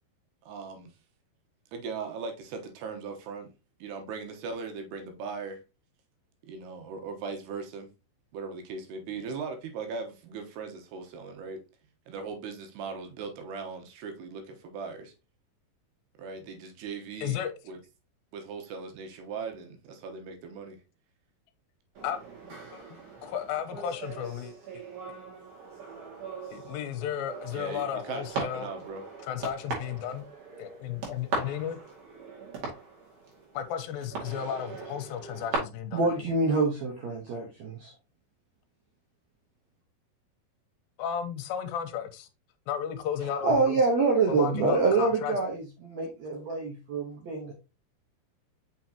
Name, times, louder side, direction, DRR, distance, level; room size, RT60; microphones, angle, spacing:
voice 1, 0.5-0.9 1.7-3.5 3.8-5.6 6.5-7.9 8.3-11.6 12.1-15.1 16.2-17.4 17.7-17.8 18.3-20.8 27.5-29.0 46.1-46.2, right 5 dB, 85° right, 3.2 m, -39 dB
voice 2, 17.2-17.5 22.0-22.2 22.4-24.8 26.5-28.7 29.2-30.3 30.6-31.8 33.5-36.0 41.0-42.3 42.7-43.8 44.3-45.4, left 9 dB, 75° left, 2.5 m, -34 dB
sound 1, 22.0-35.6, right 4 dB, 55° right, 3.4 m, -40 dB
voice 3, 35.9-37.9 43.4-47.5, right 3 dB, 70° right, 1.7 m, -26 dB
6.1 x 5.9 x 2.9 m
omnidirectional pair, 4.7 m